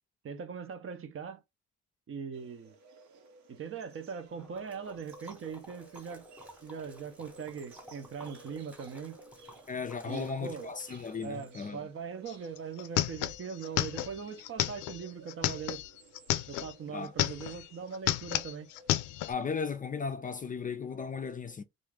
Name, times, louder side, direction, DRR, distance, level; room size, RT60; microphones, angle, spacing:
voice 1, 0.2-1.4 2.1-2.8 3.5-6.3 6.6-9.2 10.0-10.7 11.2-15.8 16.5-18.7, right 6 dB, 45° right, 0.6 m, -41 dB
sound 1, 2.3-19.8, right 1 dB, 65° right, 0.9 m, -56 dB
Liquid, 4.4-11.5, equal, 5° right, 0.8 m, -54 dB
voice 2, 9.7-11.9 16.9-17.1 19.3-21.6, left 5 dB, 25° left, 0.4 m, -36 dB
sound 2, 12.3-12.4 12.6-16.7 17.1-17.7 17.9-19.3, left 13 dB, 85° left, 0.5 m, -32 dB
2.5 x 2.3 x 3.3 m
cardioid pair, 90°, 30 cm